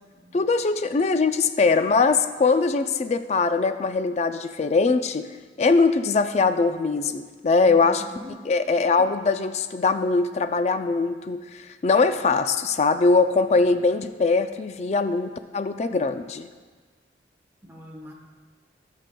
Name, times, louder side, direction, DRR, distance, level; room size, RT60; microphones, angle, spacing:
voice 1, 0.3-5.3 5.6-8.0 8.5-16.5, left 4 dB, 40° left, 10 dB, 0.4 m, -22 dB
voice 2, 7.6-8.4 17.6-18.1, equal, 10° right, -1 dB, 1.1 m, -42 dB
16.5 x 6.5 x 2.3 m, 1.5 s
head